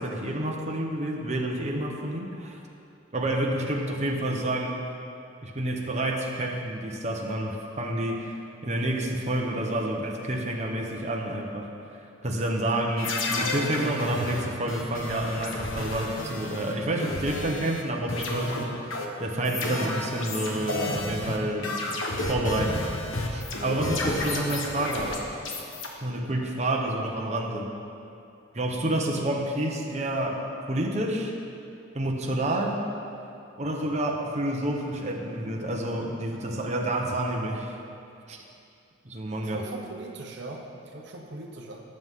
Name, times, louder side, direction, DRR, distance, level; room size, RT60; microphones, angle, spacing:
voice 1, 0.0-2.6 3.1-4.8 5.4-8.3 8.6-11.7 12.2-22.0 22.3-22.8 23.3-25.2 26.0-27.7 28.5-30.4 30.7-31.3 31.9-32.9 33.6-37.7 38.3-38.4 39.0-39.6, right 1 dB, 35° right, -1 dB, 1.1 m, -29 dB
sound 1, 13.0-17.8 18.1-25.9, left 2 dB, 75° left, 1.4 m, -31 dB
voice 2, 39.3-41.8, right 2 dB, 60° right, 1 dB, 1.0 m, -40 dB
18.5 x 7.9 x 3.8 m, 2.6 s
head